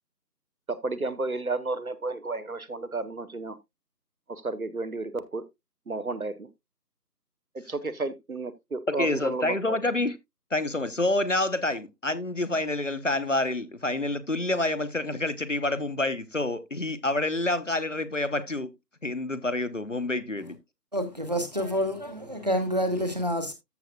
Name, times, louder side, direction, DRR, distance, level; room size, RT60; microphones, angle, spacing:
voice 1, 0.7-3.6 4.3-5.4 5.9-6.5 7.5-9.8, right 3 dB, 60° right, 1.0 m, -32 dB
voice 2, 8.9-10.2 10.5-18.7 19.0-20.6, left 2 dB, 50° left, 0.9 m, -28 dB
voice 3, 20.9-23.5, equal, 25° right, 1.3 m, -28 dB
14.0 x 6.2 x 2.2 m
figure-of-eight pair, 170°, 49 cm